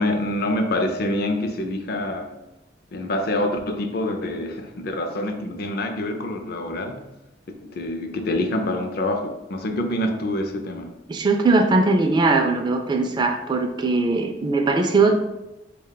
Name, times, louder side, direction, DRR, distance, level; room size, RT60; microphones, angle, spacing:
voice 1, 0.0-2.3 2.9-7.1 7.6-10.9, left 1 dB, 60° left, 5 dB, 0.5 m, -26 dB
voice 2, 11.1-15.1, right 3 dB, 25° right, 4 dB, 0.3 m, -20 dB
3.5 x 2.2 x 3.8 m, 0.96 s
head